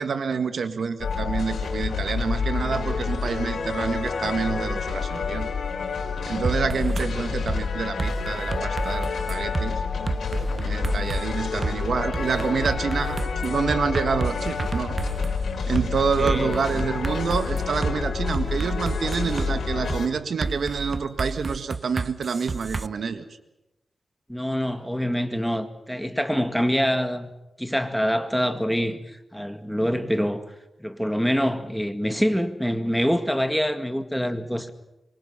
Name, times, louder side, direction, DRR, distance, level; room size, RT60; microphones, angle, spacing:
voice 1, 0.0-5.5 6.3-9.8 10.6-15.0 15.7-23.3, right 5 dB, 75° right, 1.8 m, -27 dB
sound 1, 1.0-20.1, left 5 dB, 90° left, 3.9 m, -28 dB
sound 2, 6.4-7.1 7.5-7.6 8.0-9.7 10.1-11.2 11.6-11.7 12.1-15.4 15.8-15.9 16.3-17.9 18.3-19.5 19.9-20.0 20.4-22.9, right 4 dB, 40° right, 0.8 m, -30 dB
voice 2, 16.2-16.9 24.3-27.3 27.6-30.4 30.8-34.7, equal, ahead, 2.0 m, -25 dB
26.0 x 24.0 x 5.8 m
wide cardioid pair, 100°, 0 cm